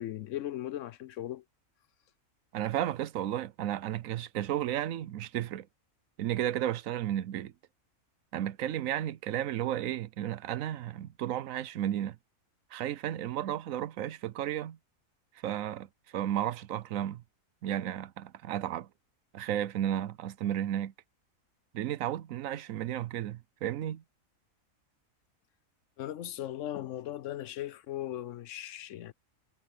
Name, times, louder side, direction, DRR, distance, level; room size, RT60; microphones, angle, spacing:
voice 1, 0.0-1.4 26.0-29.1, left 13 dB, 70° left, 0.9 m, -38 dB
voice 2, 2.5-5.7 6.2-7.5 8.3-12.2 12.7-14.8 15.4-17.2 17.6-18.9 19.3-20.9 21.7-24.0, right 11 dB, 75° right, 1.0 m, -33 dB
omnidirectional pair, 1.4 m